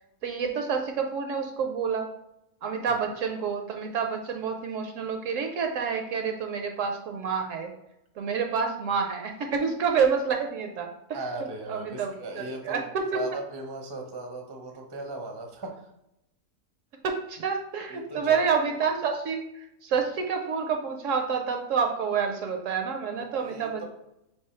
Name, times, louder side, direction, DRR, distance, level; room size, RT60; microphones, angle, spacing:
voice 1, 0.2-2.1 2.6-7.7 8.2-11.2 11.7-12.8 13.1-13.2 17.0-23.8, right 6 dB, 65° right, 4 dB, 0.9 m, -28 dB
voice 2, 11.1-12.9 13.1-15.9 17.9-18.8 23.1-23.8, right 2 dB, 30° right, 2 dB, 0.5 m, -38 dB
3.4 x 3.4 x 4.3 m, 0.82 s
omnidirectional pair, 1.6 m